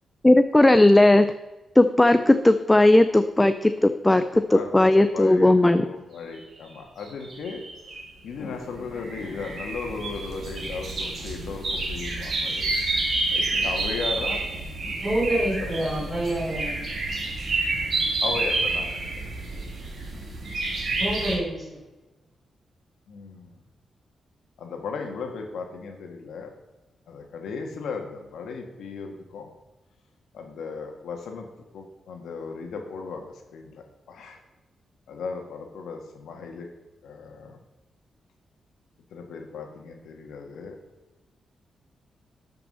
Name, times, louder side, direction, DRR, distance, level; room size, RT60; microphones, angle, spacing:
voice 1, 0.2-1.3 1.8-5.8, left 1 dB, 10° left, 10 dB, 0.4 m, -17 dB
voice 2, 4.3-12.7 13.3-14.4 14.9-15.0 15.4-16.4 18.2-18.9 23.1-23.6 24.6-26.5 27.1-29.5 30.3-31.5 31.7-34.4 35.1-36.7 37.0-37.6 39.1-40.8, left 4 dB, 90° left, 3 dB, 1.8 m, -36 dB
sound 1, 7.0-8.1 8.6-21.4, right 2 dB, 45° right, 2.1 m, -29 dB
voice 3, 15.0-16.8 21.0-21.8, right 1 dB, 15° right, -3 dB, 3.6 m, -27 dB
12.5 x 5.9 x 5.5 m, 1.1 s
wide cardioid pair, 170°, 0 cm